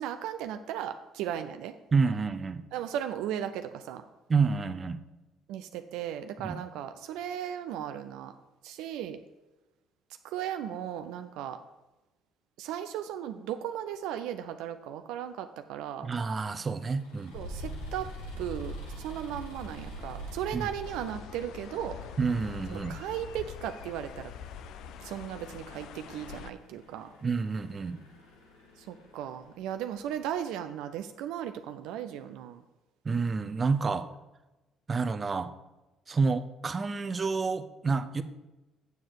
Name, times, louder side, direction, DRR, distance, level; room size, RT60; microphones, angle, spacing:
voice 1, 0.0-1.8 2.7-4.0 5.5-8.3 8.6-9.2 10.2-11.6 12.6-16.1 17.3-18.1 18.4-22.0 22.7-24.3 25.0-27.1 28.8-32.6, right 10 dB, 75° right, 8 dB, 0.5 m, -36 dB
voice 2, 1.9-2.6 4.3-5.0 6.4-6.6 16.0-17.3 20.5-20.7 22.2-23.0 27.2-28.0 33.0-34.1 34.9-35.5 36.1-38.2, right 4 dB, 35° right, 11 dB, 0.7 m, -29 dB
sound 1, 16.8-30.3, equal, 90° left, 1.7 m, -45 dB
sound 2, 20.8-26.5, left 8 dB, 70° left, 0.5 m, -44 dB
8.1 x 7.3 x 4.6 m, 1.0 s
hypercardioid pair, 60°, 0 cm